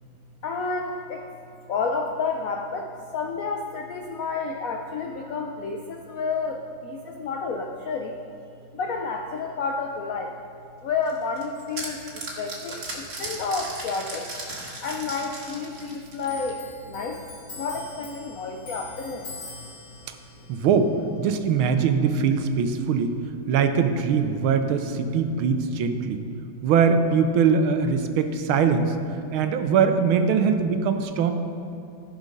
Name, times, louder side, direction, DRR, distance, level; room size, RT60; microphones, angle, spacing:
voice 1, 0.4-1.3 1.7-8.2 8.7-10.3 10.8-14.3 14.8-17.3 17.6-19.3, left 4 dB, 75° left, 3 dB, 0.7 m, -30 dB
sound 1, 11.1-16.6, right 2 dB, 50° right, 2.2 m, -36 dB
Clock, 16.3-23.3 23.5-24.9 25.1-26.0, left 3 dB, 40° left, 2.0 m, -44 dB
voice 2, 20.5-23.2 23.5-26.2 26.6-28.9 29.3-31.3, right 6 dB, 80° right, 7 dB, 1.5 m, -22 dB
14.5 x 6.1 x 5.3 m, 2.5 s
omnidirectional pair, 2.3 m